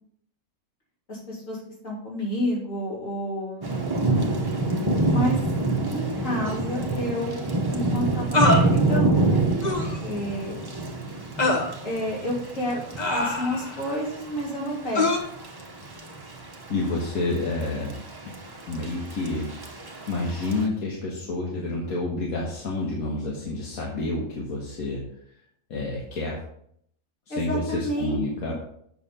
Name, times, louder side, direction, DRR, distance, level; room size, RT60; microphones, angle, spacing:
voice 1, 1.1-1.6 1.8-3.8 5.1-5.4 5.9-9.4 10.0-10.7 11.8-12.8 13.1-15.2 27.3-28.5, equal, 60° left, -4 dB, 3.4 m, -30 dB
Thunder / Rain, 3.6-20.6, right 2 dB, 20° right, 0.8 m, -27 dB
sound 1, 6.4-6.6 8.3-8.7 9.6-10.0 11.4-11.7 13.0-13.8 14.9-15.2, left 2 dB, 35° left, 1.1 m, -23 dB
voice 2, 16.7-18.0 18.3-18.4 18.7-25.1 25.7-26.4 27.3-28.5, left 2 dB, 80° left, -3 dB, 1.9 m, -29 dB
7.9 x 5.8 x 5.5 m, 0.70 s
omnidirectional pair, 1.5 m